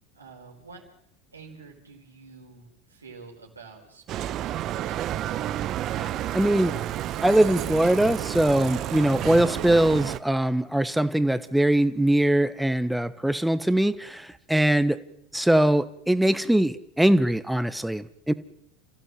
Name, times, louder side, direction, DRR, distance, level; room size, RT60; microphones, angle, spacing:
voice 1, 0.1-0.8 1.3-5.8, right 4 dB, 85° right, 1 dB, 4.8 m, -48 dB
Bicycle, 4.1-10.2, right 12 dB, 45° right, 1.1 m, -30 dB
voice 2, 5.9-6.7 7.2-15.0 15.3-18.3, right 1 dB, 5° right, 13 dB, 1.4 m, -22 dB
29.5 x 15.5 x 7.7 m, 0.75 s
figure-of-eight pair, 80°, 0 cm